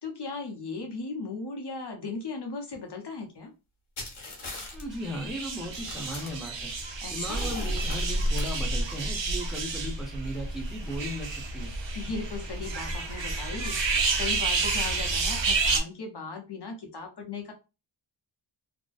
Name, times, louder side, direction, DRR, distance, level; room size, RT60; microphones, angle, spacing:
voice 1, 0.0-3.5 7.0-7.5 11.9-17.5, left 4 dB, 55° left, 2 dB, 0.7 m, -37 dB
sound 1, 4.0-4.8 5.3-5.4 5.7-6.8 7.2-8.6, left 3 dB, 70° left, 1.0 m, -40 dB
voice 2, 4.7-6.7 7.1-11.7, equal, ahead, 0 dB, 0.6 m, -37 dB
sound 2, 4.9-15.8, right 3 dB, 60° right, 0.6 m, -30 dB
2.6 x 2.1 x 2.3 m, 0.28 s
wide cardioid pair, 75°, 50 cm